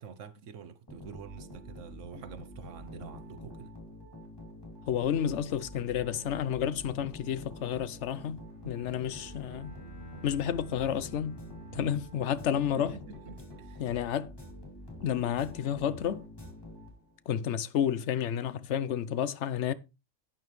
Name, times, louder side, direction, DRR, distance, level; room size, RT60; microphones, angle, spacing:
voice 1, 0.0-3.7 11.7-12.0 12.8-13.8, right 6 dB, 80° right, 1.2 m, -46 dB
sound 1, 0.9-17.3, left 1 dB, 20° left, 2.9 m, -47 dB
voice 2, 4.9-9.7 10.2-11.4 11.7-12.9 13.8-14.3 15.0-16.2 17.3-19.7, left 9 dB, 70° left, 1.0 m, -31 dB
Bowed string instrument, 8.5-13.3, right 2 dB, 50° left, 4.5 m, -51 dB
11.5 x 9.0 x 3.1 m
omnidirectional pair, 1.3 m